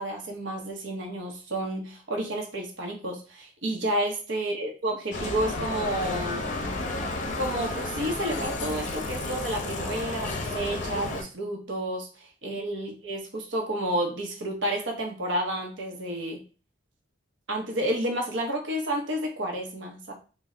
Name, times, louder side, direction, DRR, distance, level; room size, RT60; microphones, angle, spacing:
voice 1, 0.0-6.4 7.4-16.4 17.5-20.1, right 1 dB, 65° right, 2 dB, 0.8 m, -30 dB
Bicycle, 5.1-11.2, left 2 dB, 40° left, 0.6 m, -32 dB
3.2 x 2.2 x 3.7 m, 0.36 s
head